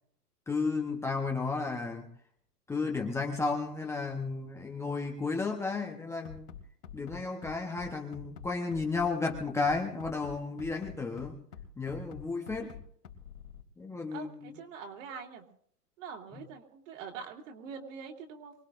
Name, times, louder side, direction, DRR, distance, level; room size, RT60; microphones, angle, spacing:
voice 1, 0.5-2.1 2.7-6.6 6.9-11.4 11.8-12.8 13.8-14.5 16.3-16.4, left 4 dB, 5° left, 0 dB, 1.0 m, -33 dB
Bass drum, 6.2-13.6, left 8 dB, 80° left, 3.1 m, -46 dB
voice 2, 14.1-15.4 16.0-18.5, right 6 dB, 55° right, 2 dB, 3.2 m, -44 dB
24.5 x 18.0 x 2.6 m, 0.65 s
hypercardioid pair, 135°, 46 cm